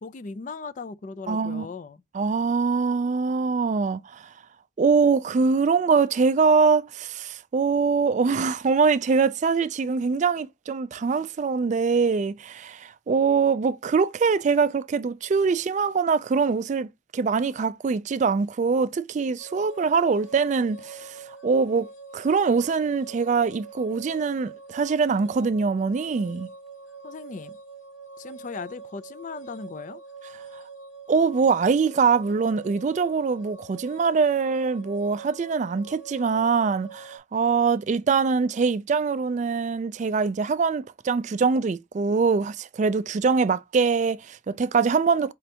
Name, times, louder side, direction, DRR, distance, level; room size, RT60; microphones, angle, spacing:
voice 1, 0.0-2.0 27.0-27.6 28.2-30.0, left 4 dB, 40° left, 0.4 m, -38 dB
voice 2, 1.3-1.7 2.1-4.3 4.8-26.5 31.1-45.3, right 5 dB, 40° right, 0.3 m, -23 dB
sound 1, 19.4-37.2, right 4 dB, 75° left, 1.3 m, -44 dB
5.0 x 3.3 x 2.8 m
head